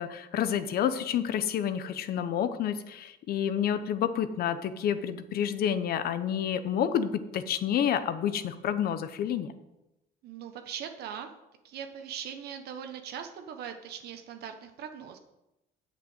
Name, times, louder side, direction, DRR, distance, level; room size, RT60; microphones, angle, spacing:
voice 1, 0.0-9.5, left 9 dB, 65° left, 12 dB, 0.9 m, -29 dB
voice 2, 10.2-11.3 11.6-15.2, right 8 dB, 70° right, 6 dB, 1.1 m, -40 dB
7.7 x 6.7 x 8.0 m, 0.93 s
cardioid pair, 110°, 17 cm